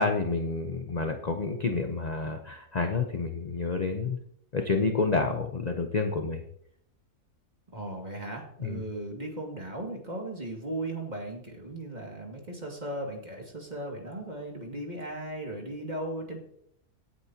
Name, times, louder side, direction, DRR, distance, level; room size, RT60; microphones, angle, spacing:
voice 1, 0.0-4.2 4.5-6.4 8.6-8.8, left 4 dB, 35° left, 4 dB, 0.8 m, -29 dB
voice 2, 7.7-16.4, right 1 dB, 30° right, 0 dB, 2.4 m, -37 dB
17.5 x 8.6 x 2.9 m, 0.69 s
omnidirectional pair, 1.6 m